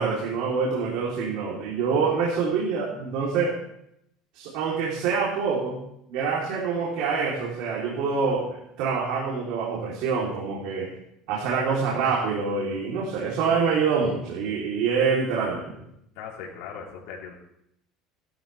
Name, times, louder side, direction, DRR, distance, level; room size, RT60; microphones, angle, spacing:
voice 1, 0.0-3.6 4.3-5.8 6.1-10.9 11.3-15.7, right 5 dB, 70° right, -5 dB, 3.3 m, -26 dB
voice 2, 16.2-17.3, left 6 dB, 80° left, -4 dB, 3.7 m, -38 dB
16.0 x 12.5 x 3.4 m, 0.76 s
cardioid pair, 155°, 0 cm